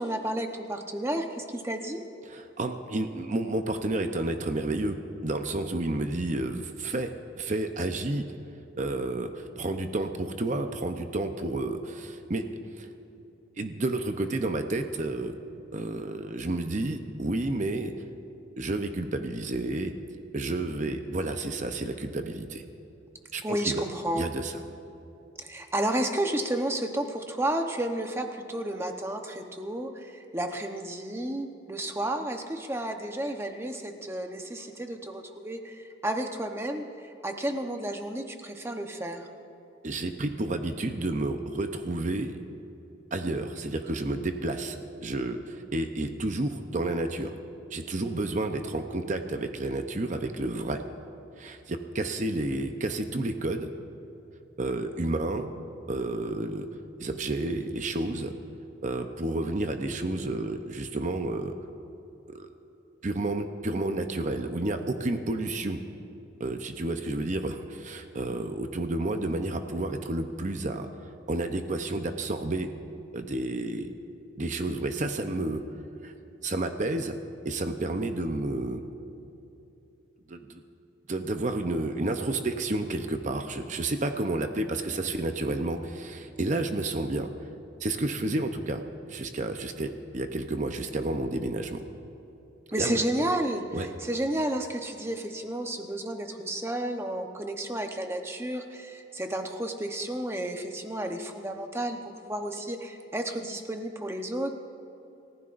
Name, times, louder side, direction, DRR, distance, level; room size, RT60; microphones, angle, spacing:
voice 1, 0.0-2.0 23.4-24.3 25.4-39.3 92.7-102.0 102.2-104.5, right 1 dB, 15° right, 4 dB, 0.9 m, -32 dB
voice 2, 2.3-8.3 8.8-12.5 12.8-12.9 13.6-15.3 15.7-17.9 18.6-19.9 20.3-22.6 23.3-23.8 24.2-24.6 39.8-42.4 43.1-47.4 47.7-50.8 51.4-53.7 54.6-55.5 55.9-56.7 57.0-58.3 58.8-61.5 62.3-62.5 63.0-65.8 66.4-72.7 73.1-73.9 74.4-75.6 76.0-76.1 76.4-77.2 77.4-78.8 80.3-80.6 81.1-87.3 87.8-91.8 92.8-93.0 93.7-93.9, right 2 dB, 40° right, 6 dB, 0.7 m, -31 dB
28.5 x 15.0 x 2.6 m, 2.9 s
head